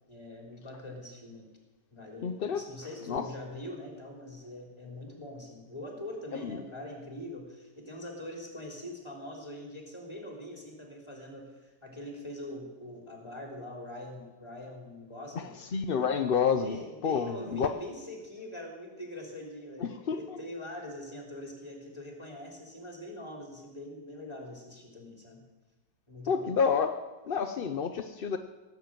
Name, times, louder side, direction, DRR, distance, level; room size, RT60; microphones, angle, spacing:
voice 1, 0.1-1.5 1.9-15.6 16.6-25.4 26.1-26.4, left 1 dB, 15° left, 0 dB, 3.6 m, -43 dB
voice 2, 2.2-2.6 3.1-3.3 6.3-6.6 15.3-17.7 19.8-20.4 26.3-27.0 27.3-28.4, left 6 dB, 55° left, 7 dB, 0.6 m, -29 dB
17.0 x 7.7 x 9.0 m, 1.1 s
omnidirectional pair, 1.8 m